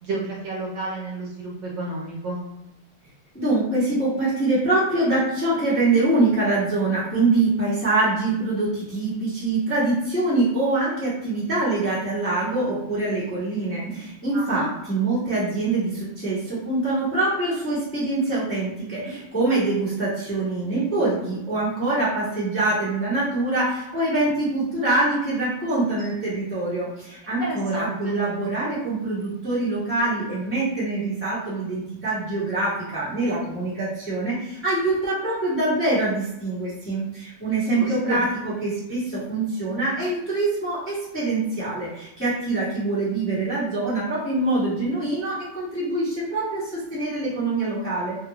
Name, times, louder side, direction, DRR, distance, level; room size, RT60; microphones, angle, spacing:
voice 1, 0.0-2.4 14.3-14.7 27.2-28.3 37.7-38.3, right 2 dB, 70° right, -3 dB, 1.2 m, -31 dB
voice 2, 3.3-38.3 38.6-48.2, right 2 dB, 10° left, -10 dB, 0.8 m, -24 dB
3.4 x 2.2 x 2.9 m, 0.86 s
omnidirectional pair, 2.4 m